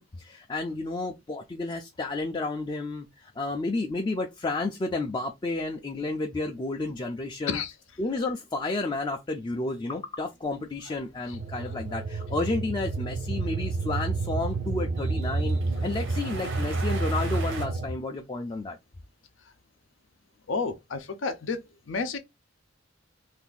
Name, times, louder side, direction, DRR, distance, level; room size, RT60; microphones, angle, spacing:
voice 1, 0.0-7.6 8.0-18.8, left 2 dB, 25° left, 0.4 m, -31 dB
sound 1, 10.4-17.7, right 3 dB, 80° right, 0.8 m, -42 dB
voice 2, 11.3-11.7 15.8-15.9 20.5-22.2, left 4 dB, 80° left, 0.6 m, -32 dB
sound 2, 11.3-17.9, right 3 dB, 45° right, 0.5 m, -30 dB
2.6 x 2.5 x 3.7 m
head